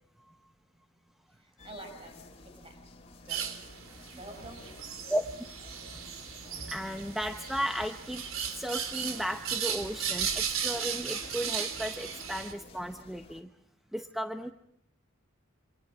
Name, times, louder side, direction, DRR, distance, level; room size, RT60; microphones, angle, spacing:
voice 1, 1.3-2.8 3.2-3.7 4.1-5.0, right 2 dB, 25° right, 6 dB, 5.6 m, -49 dB
sound 1, 1.6-13.4, left 2 dB, 30° left, 2.8 m, -52 dB
sound 2, 3.3-12.5, right 7 dB, 75° right, 3.5 m, -36 dB
voice 2, 6.5-8.2 8.6-13.5 13.9-14.5, equal, ahead, 6 dB, 1.0 m, -35 dB
28.0 x 26.0 x 6.2 m, 0.66 s
head